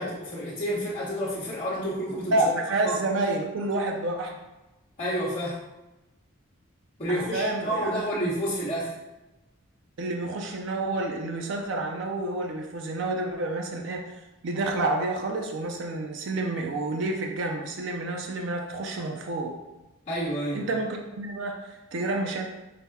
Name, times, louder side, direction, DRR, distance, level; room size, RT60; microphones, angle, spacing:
voice 1, 0.0-2.5 2.8-3.0 5.0-5.6 7.0-9.0 20.1-20.7, equal, 30° left, -13 dB, 1.0 m, -29 dB
voice 2, 2.3-4.4 7.1-7.9 10.0-14.0 14.4-19.5 20.5-22.4, right 2 dB, 60° right, 2 dB, 0.4 m, -29 dB
5.7 x 2.1 x 3.4 m, 1.0 s
head